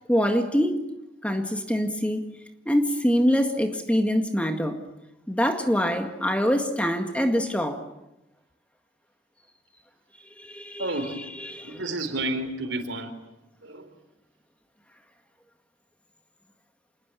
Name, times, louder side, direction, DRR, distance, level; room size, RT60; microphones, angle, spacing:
voice 1, 0.1-0.8 1.2-2.2 2.7-4.8 5.3-7.8 10.4-11.8, equal, 5° left, 1.9 m, -24 dB
voice 2, 10.8-11.3 11.6-13.1 13.6-13.9, right 2 dB, 90° right, 4.1 m, -31 dB
27.5 x 20.5 x 8.5 m
head